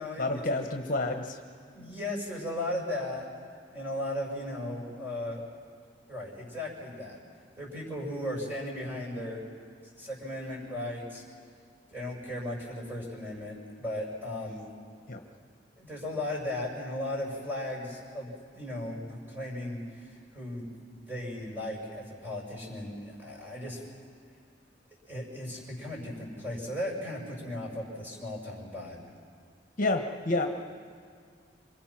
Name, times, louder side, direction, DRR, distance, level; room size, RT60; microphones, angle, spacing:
voice 1, 0.2-1.4 15.1-15.2 29.8-30.5, left 2 dB, 50° left, 4 dB, 1.3 m, -29 dB
voice 2, 1.7-3.2 3.7-5.4 6.1-7.2 7.6-9.4 10.0-11.2 11.9-14.7 15.8-20.6 20.9-23.8 25.1-29.0, left 1 dB, 10° right, -3 dB, 6.8 m, -36 dB
27.5 x 25.5 x 6.0 m, 2.1 s
head